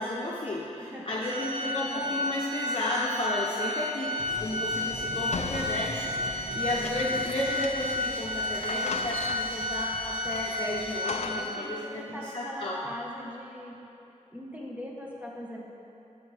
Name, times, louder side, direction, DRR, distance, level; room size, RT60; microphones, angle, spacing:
voice 1, 0.0-12.8, left 1 dB, 45° left, -5 dB, 0.8 m, -33 dB
voice 2, 0.8-1.2 1.8-2.1 6.3-6.6 11.3-13.8 14.3-15.6, left 1 dB, 10° right, -3 dB, 1.3 m, -41 dB
Organ, 1.2-11.9, left 1 dB, 40° right, 1.5 m, -32 dB
sound 1, 4.2-11.0, right 1 dB, 75° right, 1.1 m, -43 dB
sound 2, 5.3-8.1 8.3-8.4 8.6-9.7 10.3-11.7, left 5 dB, 60° left, 0.4 m, -38 dB
11.0 x 5.0 x 3.5 m, 2.8 s
wide cardioid pair, 60°, 13 cm